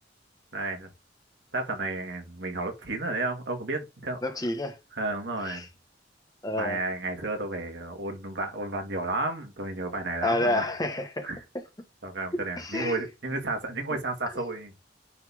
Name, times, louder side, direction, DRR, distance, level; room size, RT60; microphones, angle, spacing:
voice 1, 0.5-0.9 1.5-4.3 4.9-5.7 6.5-10.7 11.2-11.4 12.0-14.7, right 2 dB, 80° right, 2.2 m, -32 dB
voice 2, 4.2-4.8 5.4-5.7 6.4-6.8 10.2-11.3 12.6-13.0 13.9-14.0, left 1 dB, 20° left, 1.3 m, -29 dB
9.6 x 4.3 x 3.6 m
head